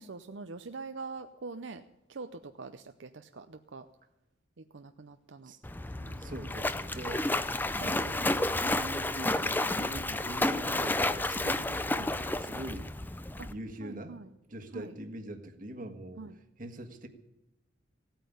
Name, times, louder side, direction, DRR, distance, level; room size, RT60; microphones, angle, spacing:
voice 1, 0.0-1.8 2.1-3.9 4.6-5.5 6.0-6.4 7.8-8.2 11.9-12.1 13.4-13.5 13.8-14.3 14.7-14.9 16.2-16.3, right 4 dB, 70° right, 8 dB, 0.6 m, -44 dB
voice 2, 5.4-7.3 7.7-12.9 13.5-14.2 14.5-16.2 16.6-17.1, right 1 dB, 45° right, 5 dB, 1.6 m, -43 dB
Splash splatter, 5.6-13.5, left 2 dB, 10° left, 0.5 m, -31 dB
16.5 x 9.1 x 8.6 m, 0.96 s
head